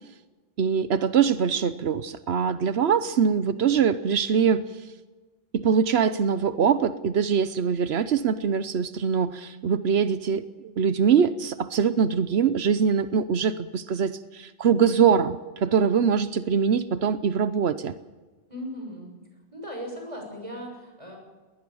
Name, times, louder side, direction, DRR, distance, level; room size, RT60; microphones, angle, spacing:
voice 1, 0.6-4.6 5.5-17.9, right 7 dB, 80° right, 13 dB, 1.1 m, -23 dB
voice 2, 18.5-19.1 19.5-21.2, equal, 30° right, 1 dB, 6.7 m, -37 dB
20.5 x 19.5 x 7.1 m, 1.2 s
omnidirectional pair, 1.1 m